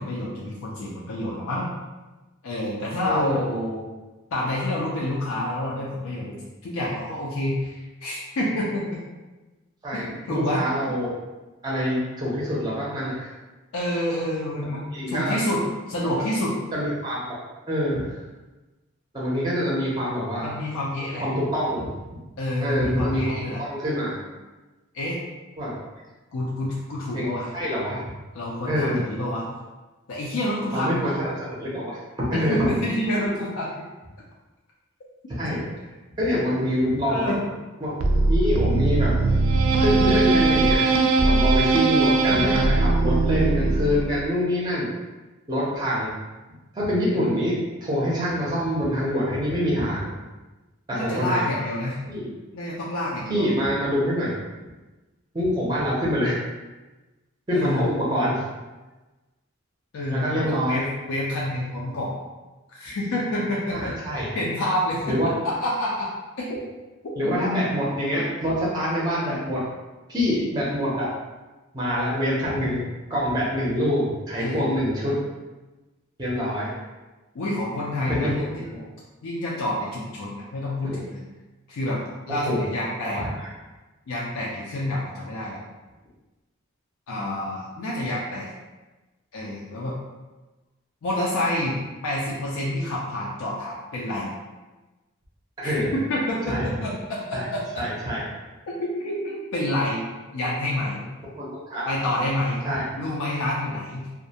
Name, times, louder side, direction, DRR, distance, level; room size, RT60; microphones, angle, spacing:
voice 1, 0.0-1.7 2.4-3.9 4.3-9.0 9.9-10.6 13.7-16.6 20.4-21.3 22.4-23.6 24.9-25.2 26.3-27.5 28.3-29.5 30.1-31.1 32.3-33.8 37.1-37.4 47.1-47.5 50.9-52.0 52.5-53.5 57.5-57.9 59.9-62.2 62.7-63.9 64.3-65.2 65.4-66.1 66.4-66.6 67.2-67.3 74.4-74.7 76.5-76.6 77.3-78.6 79.2-81.2 81.7-82.0 82.3-83.2 84.1-85.6 87.1-88.5 89.3-89.9 91.0-94.3 95.6-97.6 98.7-100.0 100.3-101.0 101.9-102.7 103.0-104.1, left 1 dB, 75° left, -5 dB, 0.4 m, -28 dB
voice 2, 3.0-3.4 9.8-11.1 11.6-13.3 14.7-15.4 16.0-16.1 16.7-17.4 17.7-18.2 19.1-20.5 21.2-22.0 22.6-24.2 25.6-25.7 27.1-27.3 27.5-28.0 28.7-29.0 30.7-32.7 35.3-35.6 36.2-37.3 37.8-39.2 39.8-40.9 41.2-44.9 45.5-46.1 46.7-47.6 47.8-50.1 50.9-51.4 52.1-52.3 53.3-54.3 55.3-56.4 57.5-58.4 60.1-60.9 63.7-64.3 65.1-65.4 67.2-69.6 70.1-71.1 71.7-72.8 73.1-75.2 76.2-76.7 78.1-78.5 78.7-78.9 80.8-81.0 82.3-82.6 83.0-83.5 95.6-95.9 96.4-96.7 97.3-97.5 97.7-98.2 101.4-101.9 102.6-102.8, equal, 20° right, -6 dB, 0.5 m, -25 dB
sound 1, 38.0-44.2, right 3 dB, 85° right, 0.3 m, -20 dB
2.3 x 2.1 x 2.7 m, 1.2 s
head